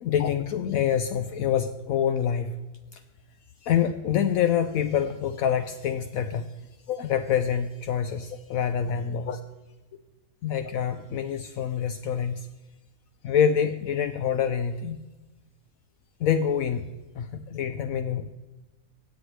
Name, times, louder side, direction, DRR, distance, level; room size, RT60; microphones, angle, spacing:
voice 1, 0.0-2.5 2.9-3.0 3.6-6.5 6.9-9.4 10.4-12.5 13.2-15.0 16.2-16.9 17.2-18.3, left 8 dB, 75° left, 8 dB, 1.0 m, -26 dB
16.5 x 8.2 x 3.1 m, 1.1 s
omnidirectional pair, 1.5 m